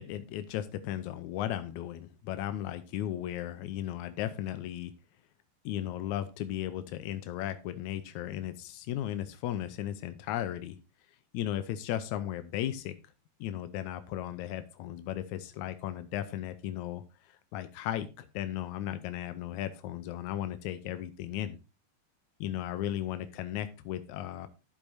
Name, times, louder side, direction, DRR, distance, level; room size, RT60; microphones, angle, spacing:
voice 1, 0.0-4.9 5.7-10.8 11.3-13.0 13.4-21.6 22.4-24.5, left 12 dB, 85° left, 11 dB, 2.1 m, -36 dB
12.0 x 8.3 x 2.7 m, 0.28 s
omnidirectional pair, 3.4 m